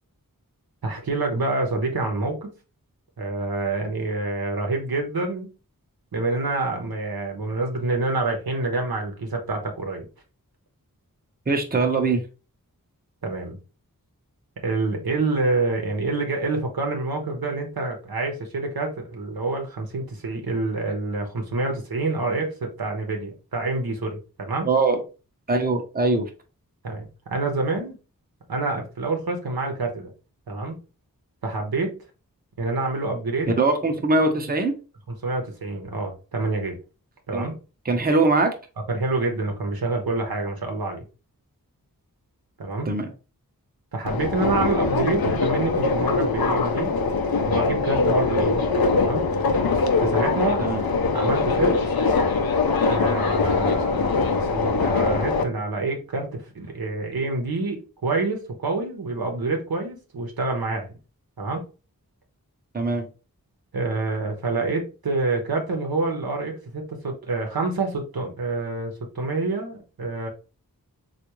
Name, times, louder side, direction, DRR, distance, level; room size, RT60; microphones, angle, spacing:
voice 1, 0.8-2.5 3.2-5.5 6.1-10.1 13.2-13.6 14.6-24.7 26.8-28.0 28.5-30.1 30.5-30.8 31.4-32.0 32.6-33.5 35.2-36.8 37.3-37.5 38.9-41.0 42.6-42.9 43.9-46.9 47.4-48.7 49.0-49.3 50.0-50.6 51.1-51.9 52.9-61.0 61.4-61.7 63.7-70.3, right 3 dB, 90° right, 3 dB, 0.9 m, -27 dB
voice 2, 11.5-12.2 24.6-25.0 25.5-26.3 33.6-34.8 37.3-37.5 37.8-38.5 42.8-43.1 50.6-50.8 62.7-63.1, right 3 dB, 25° right, 4 dB, 0.6 m, -21 dB
Subway metro underground, 44.1-55.4, left 4 dB, 85° left, 0.5 m, -22 dB
3.5 x 2.4 x 2.9 m, 0.32 s
wide cardioid pair, 50°, 35 cm